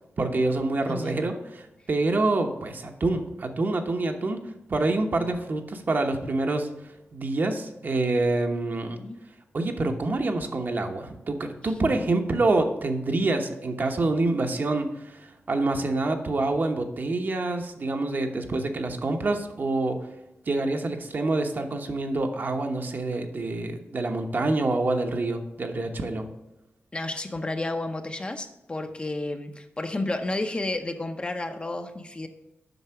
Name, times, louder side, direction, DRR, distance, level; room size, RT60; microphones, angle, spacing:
voice 1, 0.2-4.4 4.7-6.7 7.1-9.0 9.5-20.0 20.5-26.3, right 2 dB, 50° right, 4 dB, 1.0 m, -26 dB
voice 2, 0.9-1.2 8.9-9.2 26.9-32.3, left 2 dB, 25° left, 6 dB, 0.7 m, -31 dB
8.0 x 5.8 x 5.8 m, 0.95 s
wide cardioid pair, 115°, 4 cm